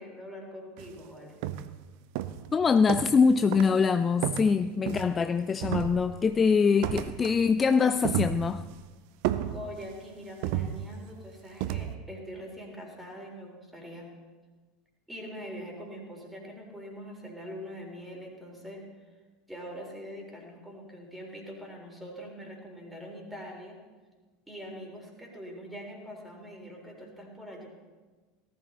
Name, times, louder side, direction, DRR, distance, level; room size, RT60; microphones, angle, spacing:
voice 1, 0.0-1.5 9.5-14.2 15.1-19.1 19.5-23.8 24.5-27.7, equal, 5° right, 1 dB, 3.8 m, -43 dB
sound 1, 0.8-1.0 1.4-1.8 2.1-3.3 3.5-3.8 4.2-5.3 5.6-6.3 6.8-7.4 7.7-8.8 9.2-10.0 10.4-11.1 11.6-11.9, right 12 dB, 50° right, 0.6 m, -32 dB
voice 2, 2.5-8.6, left 5 dB, 20° left, 11 dB, 0.4 m, -24 dB
18.0 x 13.0 x 3.9 m, 1.3 s
figure-of-eight pair, 75°, 0 cm